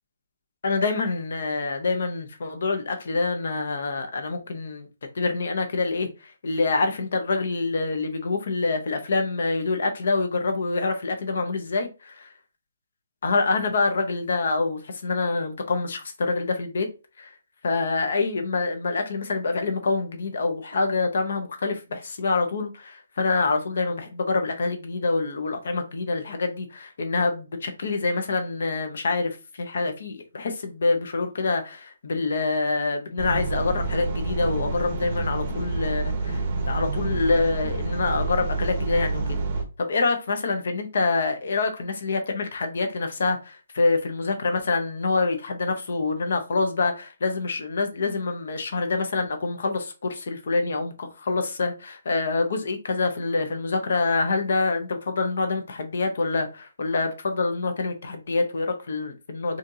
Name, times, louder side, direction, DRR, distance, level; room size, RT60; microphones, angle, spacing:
voice 1, 0.6-4.9 5.1-12.3 13.2-16.9 17.2-17.3 17.6-39.4 39.8-59.6, left 3 dB, 50° left, 0.9 m, -26 dB
sound 1, 33.2-39.6, right 3 dB, 30° right, 0.7 m, -28 dB
4.3 x 2.5 x 2.7 m
hypercardioid pair, 175°, 0 cm